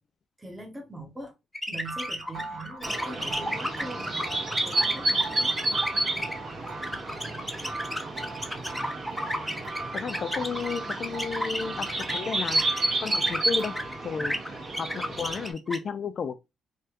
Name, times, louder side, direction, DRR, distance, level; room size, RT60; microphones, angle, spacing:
voice 1, 0.4-1.3 1.7-4.1 4.6-5.8 14.2-14.4, right 1 dB, 15° right, 0.9 m, -42 dB
sound 1, 1.5-13.9 14.2-15.8, equal, 5° left, 0.6 m, -33 dB
sound 2, 1.8-14.4, right 2 dB, 70° right, 1.1 m, -40 dB
sound 3, 2.8-15.5, right 2 dB, 55° right, 1.4 m, -31 dB
voice 2, 9.9-16.4, left 6 dB, 50° left, 0.4 m, -33 dB
3.2 x 2.3 x 2.9 m
cardioid pair, 90°, 0 cm